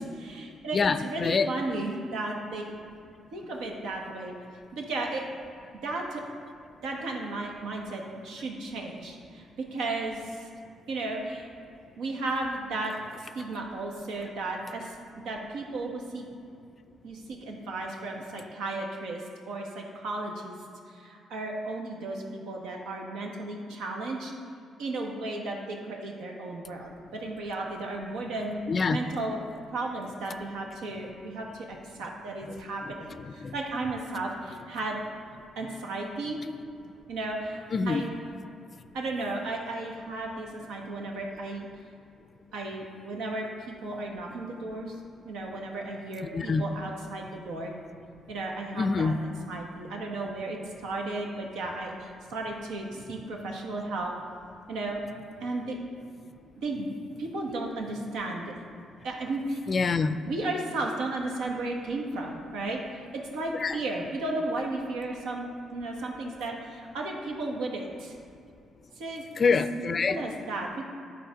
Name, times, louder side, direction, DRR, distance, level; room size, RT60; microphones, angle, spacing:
voice 1, 0.2-2.7 3.3-4.3 4.7-5.2 5.8-6.2 6.8-10.5 10.9-11.5 12.0-15.0 15.2-16.2 17.0-20.6 20.9-24.3 24.8-28.6 28.9-29.4 29.7-35.0 35.6-36.4 37.1-38.1 38.9-41.7 42.5-44.9 45.2-47.7 48.3-54.1 54.7-55.1 55.4-55.8 56.6-56.9 57.2-58.4 59.0-59.6 60.3-62.8 63.1-68.2 69.0-69.2 69.9-70.8, right 2 dB, 90° right, 0 dB, 1.2 m, -34 dB
voice 2, 0.7-1.5 28.7-29.0 33.4-33.5 37.7-38.1 46.3-46.6 48.8-49.2 59.7-60.2 63.6-63.8 69.4-70.2, left 4 dB, 40° left, 11 dB, 0.4 m, -25 dB
11.0 x 4.2 x 5.2 m, 2.6 s
cardioid pair, 90°, 0 cm